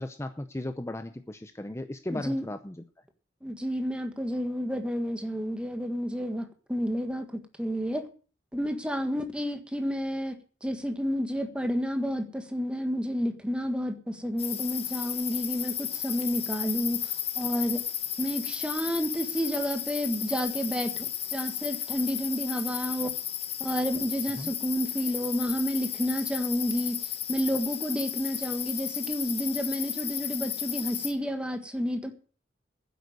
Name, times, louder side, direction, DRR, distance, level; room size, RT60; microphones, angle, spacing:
voice 1, 0.0-2.8 24.4-24.5, left 1 dB, 15° left, 8 dB, 0.7 m, -36 dB
voice 2, 2.1-2.5 3.4-7.3 7.6-8.1 8.5-10.4 10.6-17.8 18.2-23.1 23.6-32.1, equal, 5° right, 7 dB, 1.6 m, -30 dB
sound 1, 14.4-31.1, left 10 dB, 35° left, 1.2 m, -34 dB
10.0 x 8.2 x 9.4 m, 0.40 s
head